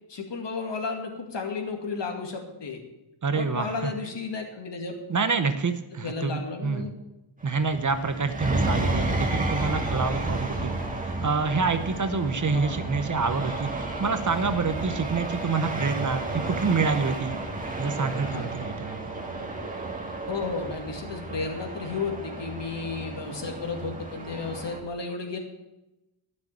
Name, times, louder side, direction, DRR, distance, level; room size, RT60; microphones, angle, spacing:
voice 1, 0.1-2.8 3.3-4.9 6.0-6.9 12.5-12.9 14.4-14.5 16.4-16.6 18.2-18.5 20.3-25.4, left 4 dB, 60° left, 3 dB, 2.3 m, -33 dB
voice 2, 3.2-3.9 5.1-6.9 7.4-10.8 11.0-13.7 14.0-17.4 17.8-19.1, right 4 dB, 40° right, 9 dB, 0.9 m, -27 dB
sound 1, 7.4-24.8, right 2 dB, 15° right, 1.8 m, -32 dB
13.0 x 6.4 x 8.5 m, 0.97 s
wide cardioid pair, 155°, 47 cm